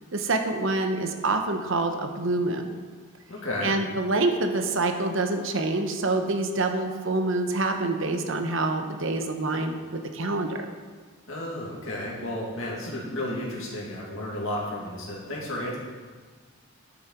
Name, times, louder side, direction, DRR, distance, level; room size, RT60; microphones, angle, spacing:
voice 1, 0.1-2.8 3.6-10.6, right 2 dB, 60° right, 5 dB, 0.9 m, -26 dB
voice 2, 3.3-3.7 11.3-15.8, left 1 dB, 60° left, -4 dB, 2.3 m, -32 dB
11.0 x 6.8 x 4.6 m, 1.5 s
head